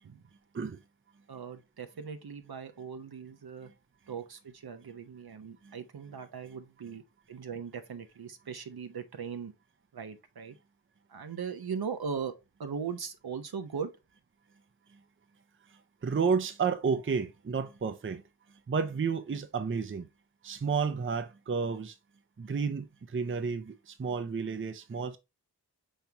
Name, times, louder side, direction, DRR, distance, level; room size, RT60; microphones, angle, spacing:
voice 1, 1.3-3.7 4.1-7.0 7.3-9.5 9.9-10.5 11.1-12.3 12.6-13.9, right 6 dB, 60° right, 0.8 m, -39 dB
voice 2, 16.0-18.2 18.7-20.1 20.4-22.0 22.4-25.2, right 5 dB, 30° right, 0.6 m, -31 dB
5.5 x 3.5 x 2.8 m
cardioid pair, 45°, 41 cm